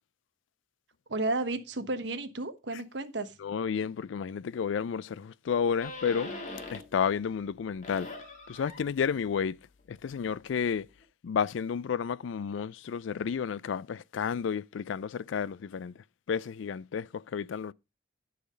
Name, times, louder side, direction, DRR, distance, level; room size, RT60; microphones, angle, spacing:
voice 1, 1.1-3.3, right 2 dB, 70° right, 1.2 m, -32 dB
voice 2, 3.4-6.3 6.7-8.1 8.5-9.6 9.9-10.9 11.2-16.0 16.3-17.7, left 7 dB, 90° left, 0.4 m, -31 dB
sound 1, 5.8-7.0 7.4-11.0, left 2 dB, 40° left, 1.9 m, -44 dB
11.0 x 5.0 x 5.1 m
head